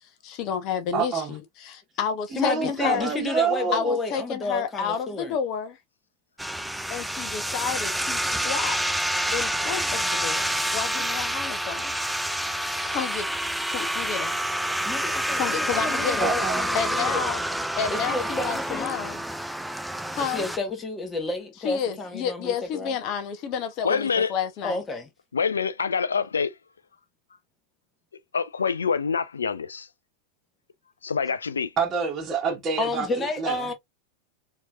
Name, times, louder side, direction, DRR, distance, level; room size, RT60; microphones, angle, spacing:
voice 1, 0.0-3.1 3.7-5.8 6.9-8.8 9.3-11.9 12.8-13.3 13.7-14.4 15.4-16.3 16.7-17.4 17.8-19.2 20.1-20.5 21.6-24.8, left 7 dB, 40° left, 0.9 m, -30 dB
voice 2, 0.9-1.3 2.3-4.0 16.2-16.7 31.8-33.1 33.4-33.5, right 6 dB, 25° right, 1.3 m, -27 dB
voice 3, 2.3-5.3 11.4-11.5 14.8-17.3 17.9-19.0 20.2-22.9 24.6-25.1 32.8-33.7, left 2 dB, 20° left, 1.2 m, -30 dB
sound 1, 6.4-20.6, right 1 dB, ahead, 0.3 m, -28 dB
voice 4, 23.8-24.3 25.3-26.5 28.3-29.9 31.0-31.7, left 6 dB, 70° left, 0.4 m, -26 dB
4.4 x 3.0 x 2.3 m
figure-of-eight pair, 90°, 0 cm